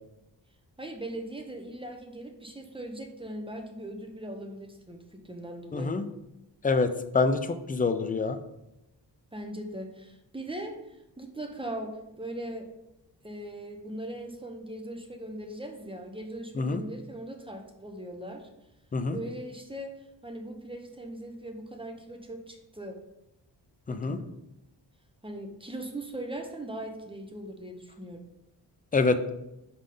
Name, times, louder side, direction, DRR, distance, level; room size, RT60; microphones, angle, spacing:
voice 1, 0.8-6.0 9.3-12.7 13.2-18.5 19.1-20.0 20.2-23.0 23.9-24.2 25.2-28.2, right 1 dB, 10° right, 4 dB, 0.8 m, -39 dB
voice 2, 5.7-6.0 6.6-6.9 7.1-8.4 16.6-16.8 18.9-19.2 23.9-24.2 28.9-29.3, left 3 dB, 20° left, 9 dB, 0.4 m, -26 dB
5.7 x 4.9 x 3.8 m, 0.89 s
wide cardioid pair, 110°, 44 cm